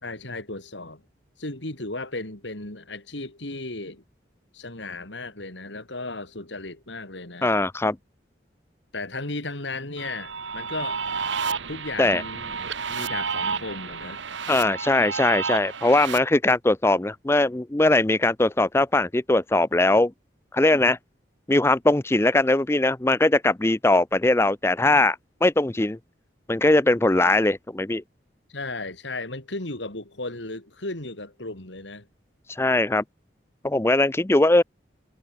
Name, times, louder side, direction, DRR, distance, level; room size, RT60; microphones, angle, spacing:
voice 1, 0.0-1.0 1.4-4.0 4.5-7.5 8.9-11.0 11.7-12.5 12.9-14.2 28.5-32.1, left 2 dB, 75° left, 3.8 m, -35 dB
voice 2, 7.4-8.0 12.0-12.2 14.5-20.1 20.5-21.0 21.5-26.0 26.5-28.0 32.5-33.0 33.6-34.6, left 2 dB, 15° left, 0.5 m, -20 dB
sound 1, 10.0-16.2, right 6 dB, 80° right, 1.5 m, -31 dB
head